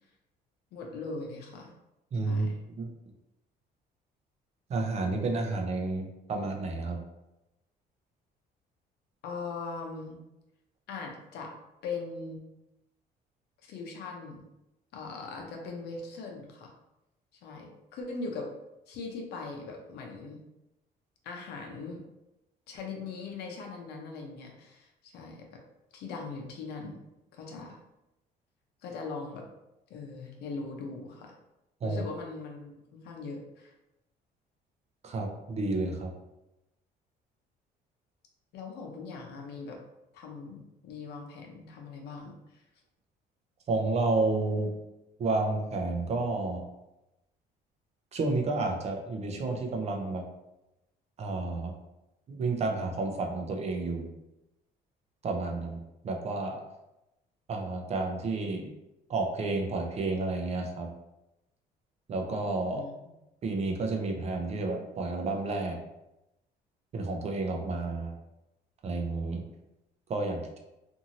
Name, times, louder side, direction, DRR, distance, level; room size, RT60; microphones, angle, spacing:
voice 1, 0.7-1.7 2.2-2.6 9.2-10.2 10.9-11.5 11.8-12.4 13.6-14.5 14.9-16.7 17.4-18.5 18.9-20.4 21.2-22.0 22.7-25.6 25.9-27.0 27.3-27.8 28.8-29.5 29.9-31.3 31.8-33.7 38.5-39.8 40.1-42.6 62.7-62.9, left 4 dB, 75° left, 1 dB, 0.7 m, -40 dB
voice 2, 2.1-2.5 2.8-2.9 4.7-7.0 31.8-32.0 35.0-36.1 43.7-44.7 45.2-46.6 48.1-50.2 51.2-51.7 52.3-54.1 55.2-55.8 56.0-56.6 57.5-58.7 59.1-60.9 62.1-62.8 63.4-65.8 66.9-68.2 68.8-69.4 70.1-70.6, right 3 dB, 40° right, 2 dB, 0.5 m, -30 dB
2.6 x 2.6 x 2.8 m, 0.92 s
cardioid pair, 110°, 17 cm